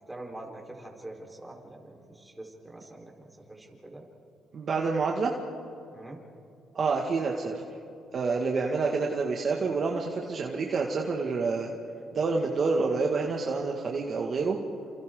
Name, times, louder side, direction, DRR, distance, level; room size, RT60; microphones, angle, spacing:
voice 1, 0.1-4.0 5.9-6.2, right 1 dB, 10° right, -1 dB, 4.4 m, -44 dB
voice 2, 4.5-5.3 6.8-7.6 8.1-11.7 12.1-14.6, right 4 dB, 50° right, 0 dB, 2.0 m, -28 dB
30.0 x 27.5 x 3.9 m, 2.7 s
cardioid pair, 90°, 0 cm